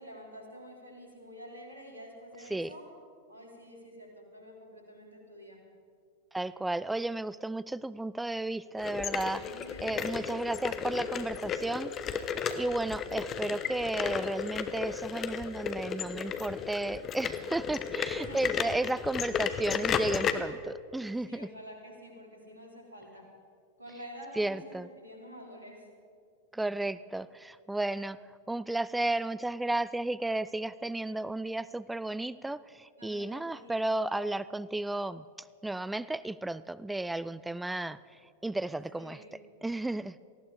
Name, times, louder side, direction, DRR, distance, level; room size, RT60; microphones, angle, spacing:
voice 1, 0.0-2.8 3.3-5.6 9.2-10.4 18.1-18.6 19.4-19.7 21.3-23.3 23.8-25.9 26.7-26.8 33.0-33.9 38.9-39.3, equal, 80° right, 0 dB, 3.4 m, -48 dB
voice 2, 6.3-9.4 9.8-12.2 12.5-21.5 24.4-24.9 26.5-28.2 28.5-35.2 35.6-38.0 38.4-39.2 39.6-40.1, right 2 dB, 5° right, 17 dB, 0.3 m, -33 dB
sound 1, 8.8-20.3, left 7 dB, 30° left, 1.0 m, -34 dB
18.5 x 15.0 x 4.9 m, 2.2 s
figure-of-eight pair, 90°, 0 cm